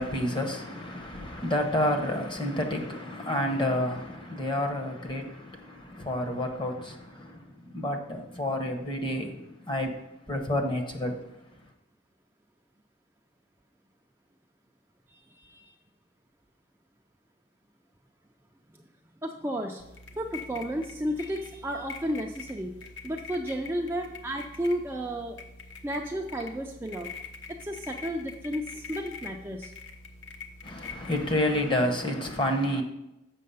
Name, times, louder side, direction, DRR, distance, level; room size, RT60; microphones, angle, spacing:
voice 1, 0.0-10.0 10.3-11.2 30.6-32.8, left 1 dB, 25° left, 0.9 m, -29 dB
voice 2, 15.1-15.8 18.7-18.8 19.2-19.8 20.1-25.4 25.8-27.1 27.6-29.7, equal, 10° right, 0.4 m, -33 dB
sound 1, 19.8-31.7, left 4 dB, 65° left, 0.8 m, -45 dB
7.5 x 6.1 x 5.5 m
head